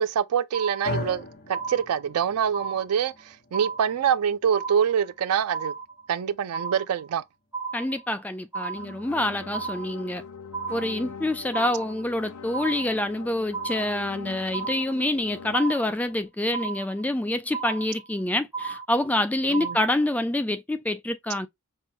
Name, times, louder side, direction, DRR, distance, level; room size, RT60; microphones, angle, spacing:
voice 1, 0.0-5.7 6.1-7.2 19.5-19.8, right 8 dB, 85° right, 0.4 m, -25 dB
sound 1, 0.5-1.2 1.5-2.2 2.5-3.2 3.5-4.2 4.5-5.2 5.5-6.2 6.5-7.2 7.5-8.2 8.5-9.2 9.5-10.2 10.5-11.2 11.5-12.2 12.5-13.2 13.5-14.2 14.5-15.2 15.5-16.2 16.5-17.2 17.5-18.2 18.5-19.2 19.5-20.2, right 5 dB, 10° right, 1.0 m, -35 dB
short hit with reverb, 0.8-9.1, left 1 dB, 45° left, 1.0 m, -40 dB
voice 2, 7.7-10.2 10.7-21.5, left 1 dB, 5° left, 0.3 m, -27 dB
sound 2, 8.7-15.6, left 5 dB, 85° left, 0.7 m, -42 dB
5.5 x 2.2 x 2.7 m
head